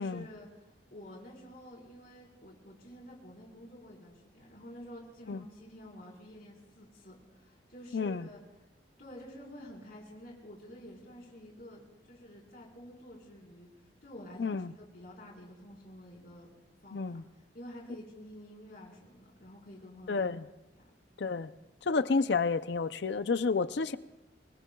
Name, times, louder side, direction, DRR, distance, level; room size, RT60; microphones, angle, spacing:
voice 1, 0.0-8.4 9.0-13.7 14.0-16.5 16.8-17.2 17.5-20.3 20.8-20.9, equal, 50° left, -2 dB, 4.4 m, -50 dB
voice 2, 7.9-8.3 14.4-14.7 16.9-17.2 20.1-20.4 21.2-21.5 21.9-24.0, left 4 dB, 65° left, 13 dB, 0.5 m, -30 dB
28.0 x 19.5 x 2.3 m, 1.0 s
head